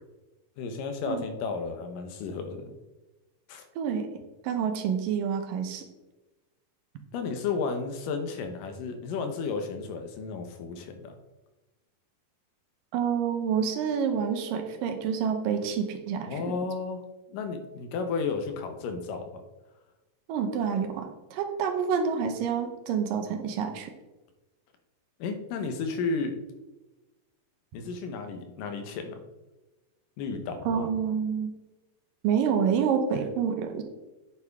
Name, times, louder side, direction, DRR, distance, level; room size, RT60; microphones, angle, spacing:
voice 1, 0.6-2.8 3.5-3.7 7.1-11.1 16.3-17.0 17.3-19.4 25.2-26.4 27.7-29.2 30.2-30.9, left 4 dB, 75° left, 7 dB, 2.5 m, -33 dB
voice 2, 3.8-4.1 4.4-5.8 12.9-16.4 20.3-23.9 30.7-31.5 32.2-33.8, right 7 dB, 80° right, 6 dB, 2.5 m, -28 dB
9.2 x 7.0 x 3.6 m, 1.1 s
omnidirectional pair, 4.0 m